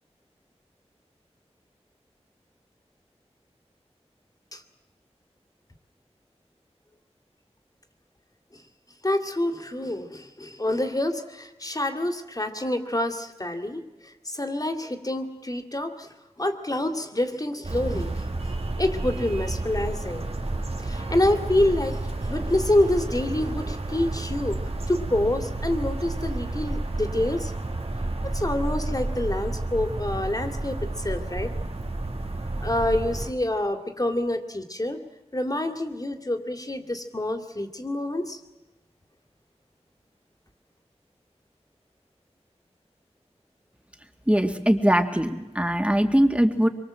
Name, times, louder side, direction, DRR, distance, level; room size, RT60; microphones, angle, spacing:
voice 1, 9.0-16.1 16.4-18.2 18.8-20.3 20.8-24.6 24.9-27.5 28.2-31.5 32.6-35.0 35.3-38.4, left 1 dB, 35° left, 6 dB, 2.5 m, -27 dB
sound 1, 17.6-33.3, right 2 dB, 60° right, 2.5 m, -31 dB
voice 2, 44.3-46.7, equal, 10° right, 6 dB, 2.1 m, -21 dB
25.0 x 23.5 x 7.7 m, 1.0 s
wide cardioid pair, 65°, 11 cm